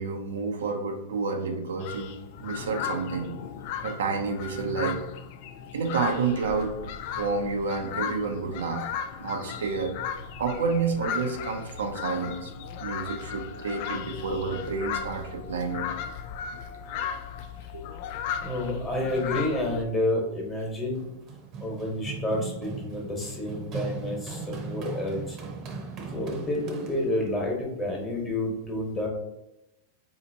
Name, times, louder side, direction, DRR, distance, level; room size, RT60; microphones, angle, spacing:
voice 1, 0.0-3.3 3.8-5.0 5.7-6.8 7.1-8.8 9.2-9.9 10.4-12.5 12.8-15.9 16.9-17.1 17.7-17.9 19.1-19.2, right 4 dB, 85° right, 3 dB, 0.6 m, -29 dB
sound 1, 1.8-19.8, left 8 dB, 55° left, 0.3 m, -36 dB
voice 2, 18.4-21.1 21.6-25.4 26.1-29.1, left 1 dB, 20° left, -1 dB, 1.3 m, -29 dB
Run, 20.9-27.3, right 4 dB, 40° right, 0.8 m, -38 dB
4.1 x 2.8 x 2.8 m, 0.89 s
hypercardioid pair, 120°, 0 cm